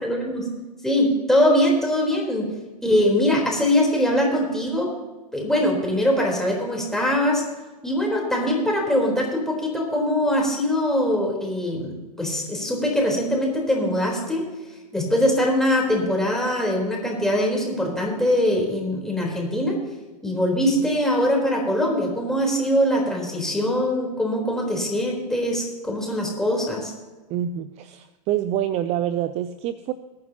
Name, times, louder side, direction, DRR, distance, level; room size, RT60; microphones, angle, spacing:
voice 1, 0.0-0.5 0.8-2.5 2.8-4.9 5.3-7.4 7.8-14.5 14.9-19.8 20.2-26.9, left 1 dB, ahead, -2 dB, 3.8 m, -22 dB
voice 2, 27.3-29.9, right 11 dB, 35° right, 12 dB, 0.5 m, -26 dB
22.5 x 9.4 x 2.9 m, 1.2 s
hypercardioid pair, 115°, 20 cm